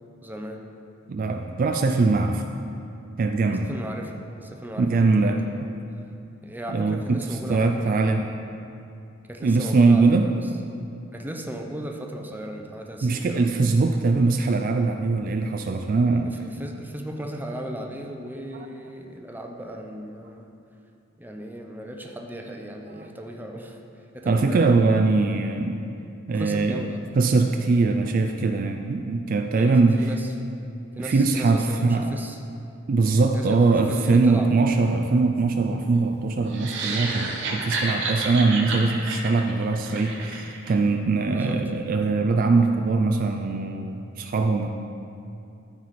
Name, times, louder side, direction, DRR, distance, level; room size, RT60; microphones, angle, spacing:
voice 1, 0.2-0.7 3.6-5.7 6.4-8.2 9.3-10.5 11.1-13.5 16.1-20.5 21.2-24.7 26.3-27.0 29.5-30.3 31.0-32.4 33.3-34.5 41.3-41.6, equal, 10° right, 2 dB, 0.6 m, -37 dB
voice 2, 1.1-2.4 3.2-3.7 4.8-5.4 6.7-7.2 7.5-8.2 9.4-10.3 13.0-16.3 22.9-23.1 24.3-25.8 26.3-26.8 27.2-30.1 31.0-32.1 32.9-44.7, right 3 dB, 45° right, 5 dB, 0.3 m, -22 dB
sound 1, 36.5-40.7, right 3 dB, 65° right, 1.0 m, -30 dB
13.0 x 4.7 x 4.2 m, 2.6 s
head